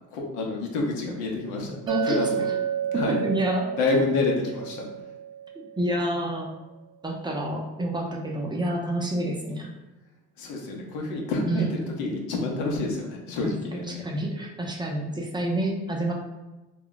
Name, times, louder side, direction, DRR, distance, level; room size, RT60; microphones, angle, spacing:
voice 1, 0.1-1.8 2.0-2.5 2.9-3.2 3.7-4.9 10.4-14.0, left 3 dB, 80° left, 0 dB, 0.8 m, -28 dB
voice 2, 1.9-2.2 3.2-3.7 5.8-6.5 7.0-9.7 11.5-11.7 13.4-13.5 14.0-16.1, right 1 dB, 15° right, -1 dB, 0.5 m, -28 dB
Chink clink, 1.9-6.1, right 8 dB, 85° right, 0.5 m, -31 dB
2.2 x 2.1 x 3.8 m, 1.1 s
supercardioid pair, 95°, 30 cm